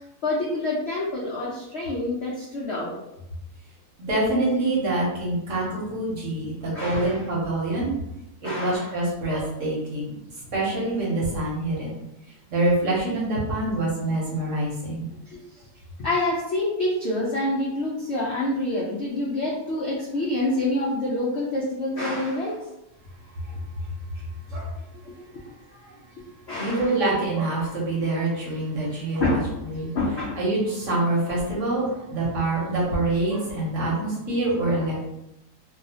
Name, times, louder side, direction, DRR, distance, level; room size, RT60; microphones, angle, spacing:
voice 1, 0.2-3.0 6.7-7.3 8.4-9.0 14.4-14.5 15.3-15.4 16.0-22.6 26.5-27.0 29.2-30.4, left 1 dB, 75° left, -4 dB, 0.6 m, -27 dB
voice 2, 4.0-7.9 8.4-10.1 10.5-11.9 12.5-15.1 24.5-24.7 26.6-29.4 29.7-29.9 30.4-35.0, right 2 dB, 55° right, -5 dB, 1.0 m, -25 dB
2.7 x 2.3 x 2.7 m, 0.88 s
omnidirectional pair, 1.8 m